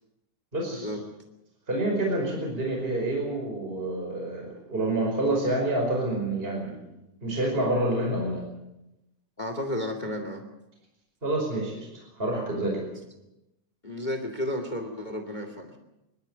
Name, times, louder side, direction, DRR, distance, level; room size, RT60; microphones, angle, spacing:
voice 1, 0.5-1.0 1.7-6.8 7.2-8.4 11.2-11.9 12.2-12.9, right 1 dB, 15° right, 0 dB, 5.2 m, -28 dB
voice 2, 9.4-10.4 13.8-15.8, left 1 dB, 15° left, 5 dB, 2.1 m, -32 dB
25.5 x 12.5 x 9.0 m, 0.91 s
omnidirectional pair, 3.7 m